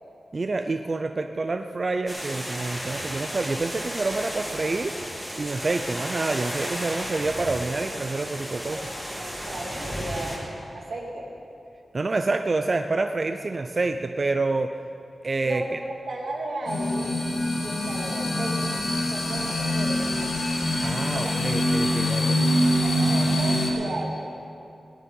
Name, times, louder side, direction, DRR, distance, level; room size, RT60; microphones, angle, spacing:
voice 1, 0.3-8.9 11.9-14.8 15.2-15.8 20.8-22.4, right 3 dB, 40° right, 7 dB, 0.4 m, -27 dB
sound 1, 2.1-10.4, equal, 5° right, 2.8 m, -34 dB
voice 2, 9.1-11.3 15.4-15.8 16.1-17.2 17.6-18.6 19.1-20.2 21.1-21.3 22.2-24.3, right 2 dB, 85° right, -2 dB, 2.4 m, -35 dB
sound 2, 16.7-23.7, left 1 dB, 90° left, 2.1 m, -24 dB
17.5 x 10.5 x 5.4 m, 2.6 s
wide cardioid pair, 140°, 0 cm